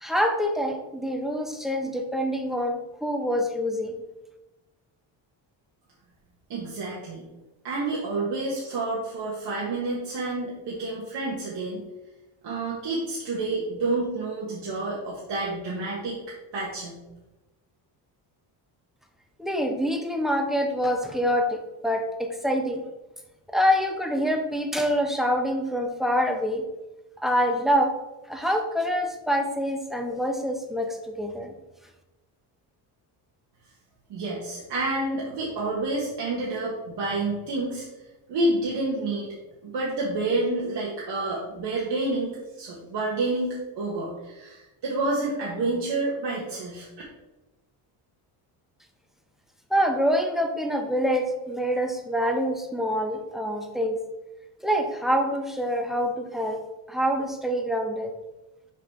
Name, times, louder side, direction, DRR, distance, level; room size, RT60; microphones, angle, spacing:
voice 1, 0.0-3.9 19.4-22.8 23.5-26.6 27.2-27.9 28.3-31.5 49.7-54.0 54.6-56.6 56.9-58.1, equal, ahead, 3 dB, 0.7 m, -26 dB
voice 2, 6.5-7.2 7.6-11.8 12.4-16.2 16.5-17.0 34.1-37.8 38.3-39.3 39.6-42.3 42.6-46.9, right 2 dB, 65° right, -5 dB, 1.5 m, -29 dB
5.8 x 4.9 x 3.6 m, 1.0 s
cardioid pair, 110°, 45 cm